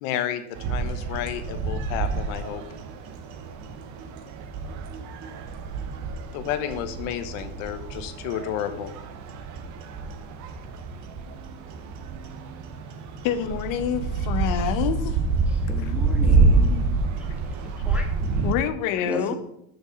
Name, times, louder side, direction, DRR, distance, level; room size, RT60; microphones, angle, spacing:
voice 1, 0.0-2.6 6.3-8.9, left 10 dB, 70° left, 9 dB, 1.1 m, -31 dB
sound 1, 0.5-18.5, right 3 dB, 45° right, 0.8 m, -27 dB
voice 2, 13.2-15.2 15.8-15.9 18.4-19.4, left 9 dB, 50° left, 11 dB, 0.8 m, -27 dB
voice 3, 15.5-17.0 17.6-18.1 19.1-19.4, equal, 5° right, 1 dB, 0.5 m, -33 dB
6.3 x 5.0 x 6.8 m, 0.77 s
cardioid pair, 175°, 42 cm